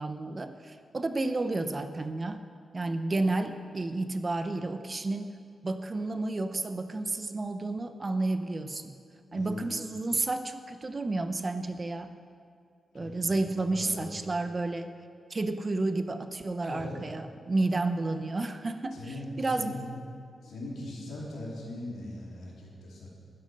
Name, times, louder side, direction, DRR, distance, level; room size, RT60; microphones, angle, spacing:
voice 1, 0.0-2.4 2.7-5.4 5.6-9.0 9.3-12.1 12.9-15.0 15.3-19.0 19.4-19.8, right 2 dB, 35° right, 9 dB, 0.8 m, -31 dB
voice 2, 9.3-9.7 12.9-13.4 13.7-14.1 16.6-17.0 18.9-19.8 20.4-23.1, left 2 dB, 85° left, -4 dB, 3.2 m, -40 dB
11.5 x 11.0 x 5.3 m, 2.2 s
cardioid pair, 75°, 0 cm